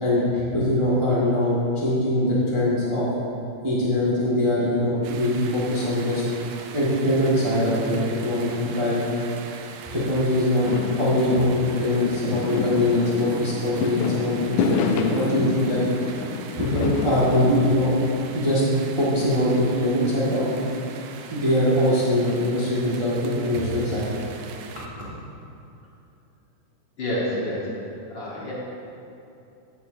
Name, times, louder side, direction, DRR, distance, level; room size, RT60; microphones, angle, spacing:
voice 1, 0.0-3.1 3.6-6.2 6.7-9.0 9.9-10.7 11.0-15.8 16.6-17.9 18.3-18.6 18.9-20.6 21.3-24.1 24.7-24.8, left 1 dB, 50° right, -7 dB, 0.3 m, -22 dB
sound 1, 5.0-24.9, right 6 dB, 85° right, 1.4 m, -41 dB
Fireworks, 10.6-17.7, left 5 dB, 80° left, 2.0 m, -28 dB
voice 2, 27.0-27.7 28.1-28.5, left 1 dB, 50° left, -6 dB, 1.5 m, -28 dB
14.5 x 7.1 x 2.6 m, 2.7 s
omnidirectional pair, 3.5 m